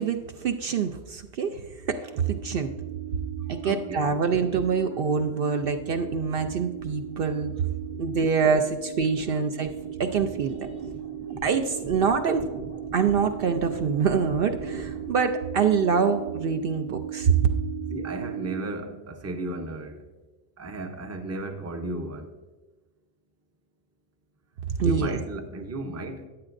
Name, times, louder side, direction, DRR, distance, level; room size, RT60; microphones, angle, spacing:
voice 1, 0.0-2.7 3.5-7.5 8.0-9.7 10.0-10.7 11.4-12.4 12.9-17.4 24.8-25.2, right 6 dB, 60° right, 0.7 m, -25 dB
sound 1, 1.8-18.7, right 9 dB, 85° right, 2.0 m, -37 dB
voice 2, 3.6-4.1 9.3-9.4 17.9-20.1 20.6-22.3 24.8-26.3, right 2 dB, 15° right, 0.6 m, -34 dB
14.5 x 9.7 x 2.6 m
omnidirectional pair, 1.1 m